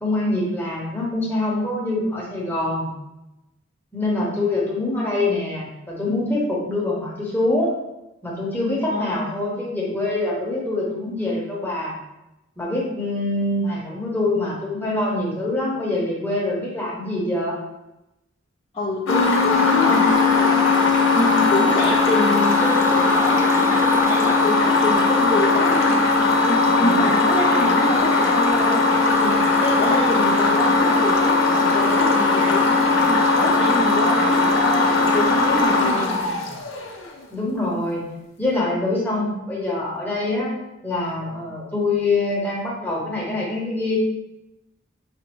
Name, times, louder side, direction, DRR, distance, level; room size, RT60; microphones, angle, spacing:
voice 1, 0.0-2.9 3.9-7.7 8.2-11.9 12.6-17.6 19.7-20.1 26.8-27.0 37.3-38.0 38.4-40.5 40.8-44.0, left 2 dB, 10° left, -5 dB, 0.8 m, -24 dB
voice 2, 8.9-9.3 18.7-36.2, left 1 dB, 25° left, -4 dB, 0.4 m, -27 dB
sound 1, 19.1-37.0, left 3 dB, 80° left, 0.7 m, -18 dB
4.9 x 2.5 x 2.9 m, 0.93 s
head